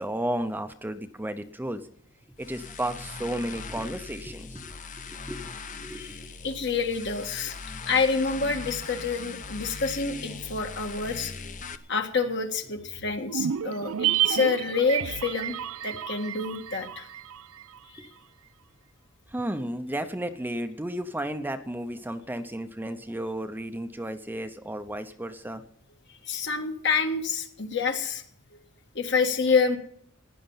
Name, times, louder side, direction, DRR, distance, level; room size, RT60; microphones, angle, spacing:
voice 1, 0.0-1.9 2.4-4.8 5.1-5.4 5.7-6.3 13.9-14.0 18.0-18.1 19.3-25.6, right 1 dB, 10° right, 8 dB, 0.7 m, -33 dB
sound 1, 2.4-11.8, left 4 dB, 40° left, 0.8 m, -40 dB
voice 2, 6.4-7.6 7.9-11.3 11.9-15.6 15.8-17.1 17.9-18.1 26.2-28.2 29.0-29.8, left 5 dB, 60° left, 4 dB, 1.8 m, -27 dB
sound 2, 13.3-17.8 18.0-18.1, right 10 dB, 85° right, 0.5 m, -30 dB
16.0 x 10.0 x 5.6 m, 0.65 s
head